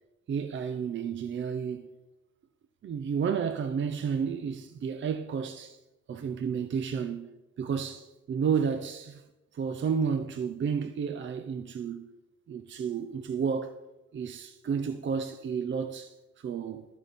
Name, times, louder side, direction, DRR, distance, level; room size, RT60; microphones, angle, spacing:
voice 1, 0.3-1.9 2.8-5.8 6.1-7.3 7.6-9.2 9.5-12.1 12.5-13.7 14.1-16.8, right 6 dB, 40° right, 0.5 m, -31 dB
12.5 x 6.1 x 3.5 m
cardioid pair, 90°, 30 cm